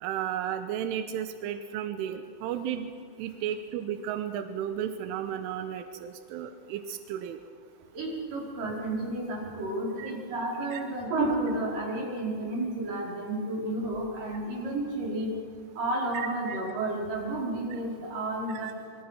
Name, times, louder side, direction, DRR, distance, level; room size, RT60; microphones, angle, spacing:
voice 1, 0.0-2.9 3.2-7.4 10.0-10.1 10.7-10.8 16.1-16.6 18.5-18.7, right 9 dB, 90° right, 8 dB, 3.5 m, -34 dB
voice 2, 7.9-15.3 15.8-18.7, right 2 dB, 45° right, -3 dB, 6.5 m, -31 dB
29.0 x 23.0 x 5.9 m, 2.4 s
omnidirectional pair, 5.5 m